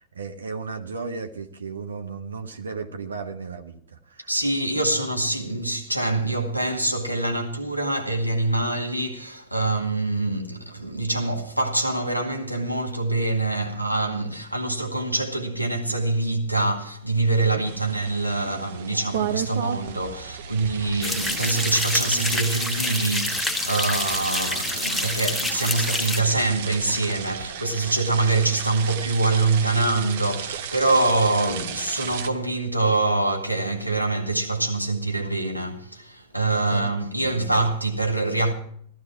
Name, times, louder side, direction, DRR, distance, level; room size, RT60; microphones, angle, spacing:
voice 1, 0.0-4.3 17.5-17.9 36.5-36.8 37.2-37.4, right 4 dB, 70° right, 1.2 m, -35 dB
voice 2, 4.3-38.5, right 2 dB, 90° right, 2.1 m, -25 dB
sound 1, 17.6-32.3, right 9 dB, 55° right, 1.0 m, -34 dB
sound 2, 21.0-26.2, left 2 dB, 5° left, 1.1 m, -28 dB
15.5 x 13.5 x 4.5 m
figure-of-eight pair, 90°, 0 cm